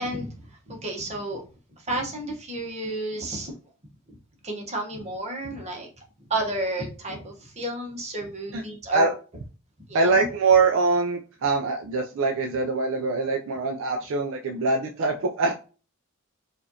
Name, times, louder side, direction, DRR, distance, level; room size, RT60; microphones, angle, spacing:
voice 1, 0.0-1.4 1.8-3.5 4.4-5.9 6.3-9.1 9.9-10.3, right 1 dB, 30° right, 1 dB, 1.0 m, -32 dB
voice 2, 9.9-15.5, right 4 dB, 60° right, 3 dB, 0.4 m, -23 dB
4.8 x 2.5 x 2.7 m, 0.36 s
head